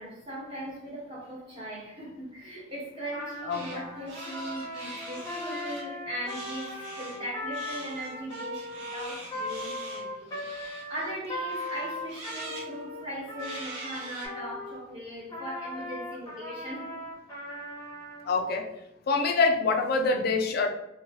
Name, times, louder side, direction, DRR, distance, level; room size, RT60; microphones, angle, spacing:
voice 1, 0.0-17.0, equal, 30° right, -4 dB, 1.0 m, -39 dB
Trumpet, 3.1-14.8 15.3-18.3, left 1 dB, 20° left, 0.7 m, -38 dB
voice 2, 3.5-3.8 18.3-18.7 19.1-20.7, left 3 dB, 55° left, 5 dB, 0.4 m, -25 dB
sound 1, 3.5-3.8 4.1-5.8 6.3-7.2 7.5-11.1 11.5-12.7 13.4-14.3, right 2 dB, 80° right, 0.8 m, -43 dB
2.9 x 2.2 x 2.7 m, 0.88 s
head